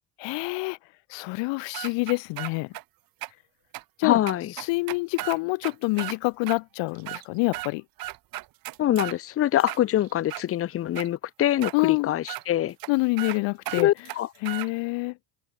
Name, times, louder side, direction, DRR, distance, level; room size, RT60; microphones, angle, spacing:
voice 1, 0.2-0.8 1.1-2.7 4.0-4.2 4.6-7.8 11.7-12.1 12.9-13.9 14.4-15.2, left 26 dB, 70° left, 0.8 m, -26 dB
sound 1, 1.7-2.8 3.2-3.3 3.7-3.8 4.3-6.2 6.5-6.6 6.9-7.7 8.0-9.2 9.6-10.4 10.9-11.1 11.6-11.7 12.3-12.4 12.8-12.9 13.2-13.4 13.6-14.7, right 17 dB, 50° right, 0.7 m, -35 dB
voice 2, 4.0-4.5 8.8-12.7 13.8-14.3, left 12 dB, 30° left, 0.5 m, -24 dB
open air
supercardioid pair, 95°, 46 cm